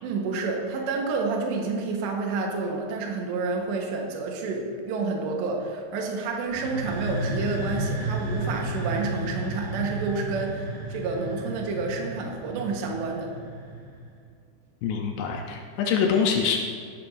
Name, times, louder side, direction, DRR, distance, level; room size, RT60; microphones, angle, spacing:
voice 1, 0.0-13.3, right 4 dB, 75° right, 1 dB, 3.3 m, -29 dB
sound 1, 6.5-14.1, right 1 dB, 50° right, 1.2 m, -32 dB
voice 2, 14.8-16.6, left 6 dB, 75° left, 2 dB, 2.5 m, -24 dB
15.5 x 11.0 x 2.7 m, 2.2 s
omnidirectional pair, 5.5 m